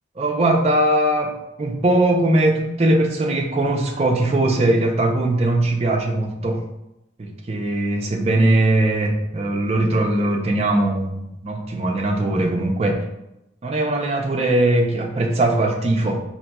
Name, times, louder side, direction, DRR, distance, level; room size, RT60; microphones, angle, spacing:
voice 1, 0.2-6.6 7.2-13.0 13.6-16.2, right 1 dB, 35° right, 2 dB, 0.4 m, -20 dB
4.1 x 2.5 x 2.2 m, 0.88 s
head